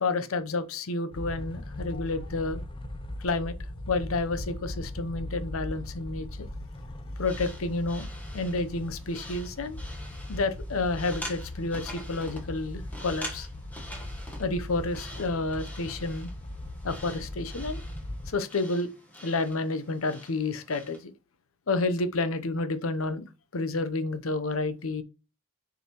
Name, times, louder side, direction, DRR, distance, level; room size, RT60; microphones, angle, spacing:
voice 1, 0.0-2.6 3.2-3.5 3.9-6.5 7.2-9.8 10.3-13.5 14.4-16.3 16.8-17.8 18.3-18.9 19.2-21.1 21.7-25.0, left 3 dB, 75° left, 0.7 m, -30 dB
sound 1, 1.1-18.3, left 1 dB, 25° left, 0.6 m, -39 dB
sound 2, 7.2-21.0, equal, 10° left, 1.2 m, -46 dB
6.7 x 4.8 x 3.0 m
head